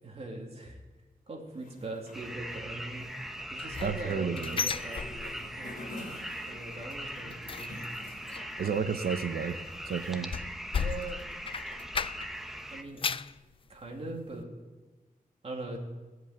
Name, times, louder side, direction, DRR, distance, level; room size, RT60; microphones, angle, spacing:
voice 1, 0.0-0.8 1.3-3.1 3.5-5.9 6.5-7.8 8.6-8.8 10.8-11.2 12.7-13.1 13.7-14.5 15.4-15.8, right 2 dB, 40° right, 0 dB, 2.7 m, -41 dB
sound 1, 1.5-8.8, left 1 dB, 60° left, 2.9 m, -49 dB
sound 2, 2.1-12.8, equal, ahead, 1.0 m, -41 dB
sound 3, 3.4-5.7 6.0-6.4 6.7-12.5 12.8-13.4 13.9-14.0 14.4-14.5, left 6 dB, 35° left, 0.4 m, -36 dB
voice 2, 3.8-4.6 8.6-9.6 9.8-10.3, right 6 dB, 85° right, 9 dB, 1.0 m, -31 dB
16.5 x 8.1 x 9.1 m, 1.3 s
wide cardioid pair, 145°, 15 cm